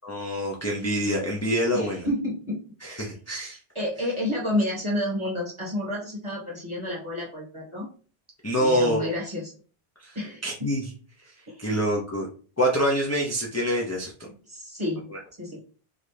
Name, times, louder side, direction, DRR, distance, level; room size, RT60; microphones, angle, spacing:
voice 1, 0.0-2.1 2.8-3.6 8.4-9.1 10.0-10.2 10.4-10.8 11.2-11.3 11.6-12.3 12.6-14.3 15.1-15.2, equal, 20° left, -3 dB, 0.5 m, -26 dB
voice 2, 1.7-2.6 3.7-7.9 8.6-9.5 10.1-10.7 11.5-11.8 14.5-15.0 15.4-15.6, left 1 dB, 25° right, -5 dB, 1.6 m, -30 dB
3.9 x 3.2 x 3.3 m, 0.41 s
omnidirectional pair, 1.1 m